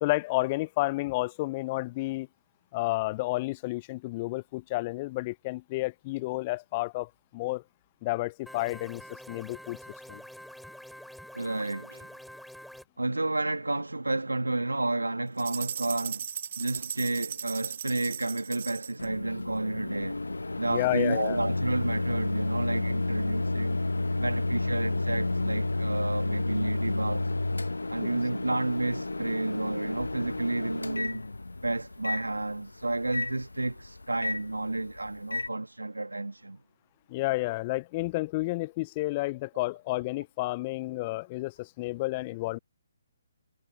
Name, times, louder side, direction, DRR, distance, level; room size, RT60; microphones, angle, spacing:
voice 1, 0.0-2.3 2.7-7.6 8.0-9.8 10.1-10.2 20.7-21.4 28.0-28.2 37.1-42.6, left 21 dB, 30° left, 0.3 m, -31 dB
sound 1, 8.5-12.8, equal, ahead, 3.0 m, -47 dB
voice 2, 11.3-12.1 13.0-16.3 16.6-20.2 20.6-23.8 24.2-27.3 27.9-31.2 31.6-36.6, right 2 dB, 90° right, 1.5 m, -31 dB
sound 2, 15.4-19.0, right 8 dB, 50° right, 1.0 m, -37 dB
Microwave oven, 19.0-35.5, left 2 dB, 85° left, 1.0 m, -31 dB
figure-of-eight pair, 140°, 0 cm